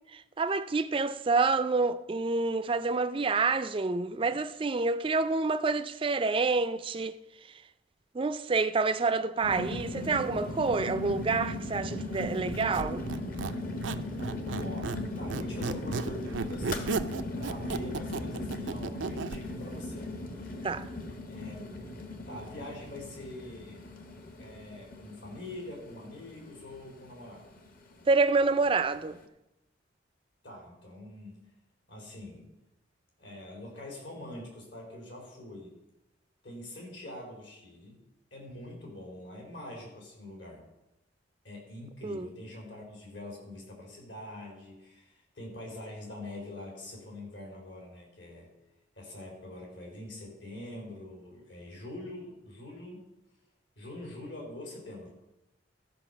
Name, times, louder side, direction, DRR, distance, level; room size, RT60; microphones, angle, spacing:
voice 1, 0.1-7.2 8.1-13.0 20.6-20.9 28.1-29.2 42.0-42.3, right 4 dB, 30° right, 0.4 m, -28 dB
sound 1, 9.4-29.2, left 1 dB, 50° left, 1.2 m, -38 dB
Squeak, 12.5-15.0 15.3-19.4, right 4 dB, 80° right, 0.5 m, -35 dB
voice 2, 14.6-16.8 17.4-20.1 21.3-21.8 22.3-23.8 24.4-27.5 30.4-31.4 31.9-32.5 33.2-35.7 36.4-38.0 38.3-40.6 41.4-48.5 49.0-53.0 53.8-55.1, left 1 dB, 70° left, 3.9 m, -44 dB
13.5 x 5.3 x 6.9 m
head